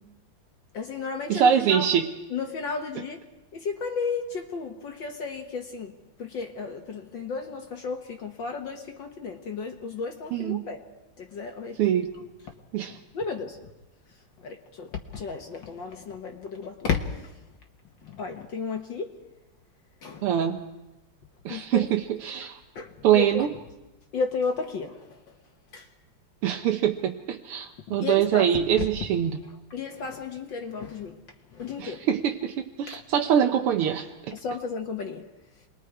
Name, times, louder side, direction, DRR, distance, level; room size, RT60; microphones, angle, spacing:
voice 1, 0.7-1.9 2.3-3.2 3.5-5.9 6.2-10.8 11.2-11.8 13.1-13.6 14.4-17.0 18.0-19.1 20.0-20.2 21.5-21.9 22.8-23.5 24.1-25.0 25.7-25.8 28.0-28.5 28.8-28.9 29.7-31.2 31.5-32.0 32.9-33.0 34.3-35.2, left 5 dB, 60° left, 3 dB, 1.9 m, -33 dB
voice 2, 1.3-2.1 10.3-10.7 11.8-12.1 12.7-13.0 20.2-20.6 21.5-22.6 23.0-23.5 26.4-29.4 31.8-34.1, right 9 dB, 90° right, 3 dB, 1.9 m, -24 dB
28.0 x 21.5 x 4.7 m, 1.0 s
omnidirectional pair, 2.4 m